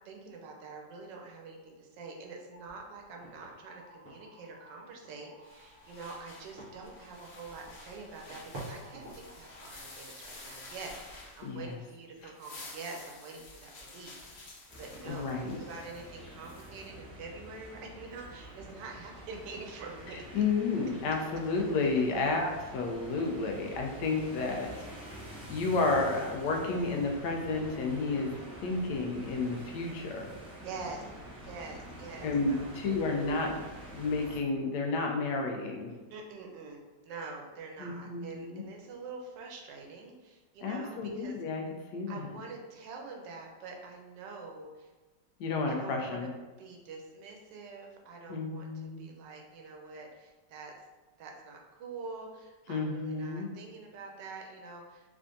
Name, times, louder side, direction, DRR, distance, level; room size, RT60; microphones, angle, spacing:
voice 1, 0.0-20.4 30.6-31.1 31.4-32.7 36.1-41.3 42.1-44.9 45.6-46.3 46.6-50.7 51.2-55.1, right 4 dB, 85° right, 1 dB, 1.3 m, -46 dB
sound 1, 2.5-9.7, right 1 dB, 45° right, 1.0 m, -50 dB
sound 2, 5.4-11.8 12.2-16.9, left 2 dB, 60° left, 0.7 m, -50 dB
sound 3, 14.7-34.4, equal, 5° right, 0.6 m, -47 dB
voice 2, 15.1-15.6 20.3-24.9 25.5-28.3 28.6-30.3 32.2-33.5 33.9-35.9 37.8-38.6 40.6-41.6 41.9-42.3 45.4-46.3 48.3-49.1 52.7-53.5, left 3 dB, 75° left, 1 dB, 1.2 m, -31 dB
3.5 x 3.4 x 2.6 m, 1.2 s
omnidirectional pair, 1.9 m